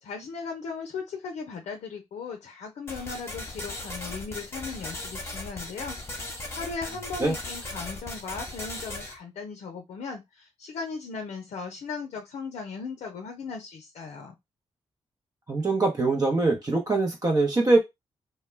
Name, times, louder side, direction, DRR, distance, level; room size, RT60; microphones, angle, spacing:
voice 1, 0.0-14.3, left 5 dB, 75° left, 0.5 m, -37 dB
sound 1, 2.9-9.1, left 2 dB, 25° left, 1.0 m, -37 dB
voice 2, 15.5-17.8, right 3 dB, 35° right, 0.7 m, -23 dB
2.2 x 2.1 x 3.2 m
supercardioid pair, 55°, 12 cm